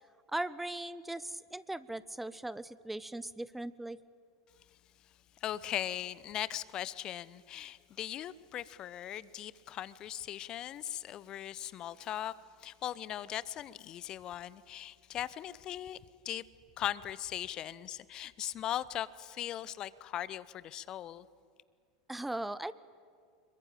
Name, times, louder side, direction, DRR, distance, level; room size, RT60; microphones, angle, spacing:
voice 1, 0.3-4.0 22.1-22.7, right 1 dB, 5° right, 0.7 m, -38 dB
voice 2, 5.4-12.3 12.6-16.0 16.2-16.4 16.8-21.3, left 11 dB, 35° left, 0.8 m, -39 dB
26.5 x 23.0 x 8.9 m
figure-of-eight pair, 80°, 2 cm